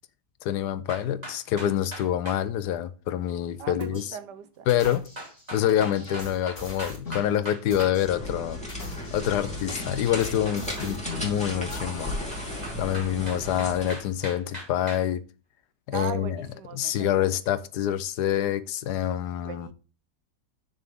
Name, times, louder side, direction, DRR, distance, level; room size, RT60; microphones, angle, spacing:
voice 1, 0.4-4.2 4.7-5.1 5.5-12.1 12.8-15.2 15.9-16.5 16.7-19.7, left 11 dB, 70° left, 1.2 m, -26 dB
sound 1, 0.9-2.4 4.8-8.0 10.1-11.3 12.3-15.0, right 1 dB, 20° right, 2.6 m, -40 dB
voice 2, 3.6-4.7 10.5-11.0 15.9-17.3 19.4-19.7, right 8 dB, 75° right, 1.4 m, -39 dB
sound 2, 3.8-4.1 4.7-7.3 7.7-8.1 8.6-11.3 11.7-11.8, left 3 dB, 40° left, 2.5 m, -41 dB
sound 3, 8.0-14.0, left 1 dB, 5° left, 2.5 m, -35 dB
6.9 x 6.6 x 3.6 m
omnidirectional pair, 1.9 m